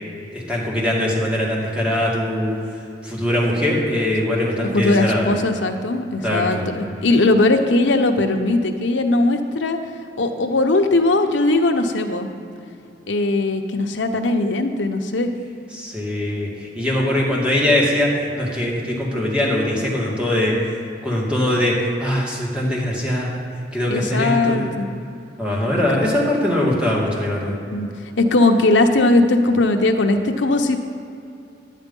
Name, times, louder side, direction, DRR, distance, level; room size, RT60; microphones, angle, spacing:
voice 1, 0.3-2.5 3.0-5.4 6.2-6.6 15.7-20.6 21.0-23.4 23.7-24.7 25.4-27.6, left 1 dB, 5° right, -4 dB, 2.1 m, -21 dB
voice 2, 4.7-9.8 10.2-12.3 13.1-15.3 23.9-24.9 27.7-27.9 28.2-30.8, left 2 dB, 90° left, 5 dB, 0.9 m, -19 dB
10.5 x 9.4 x 5.4 m, 2.5 s
head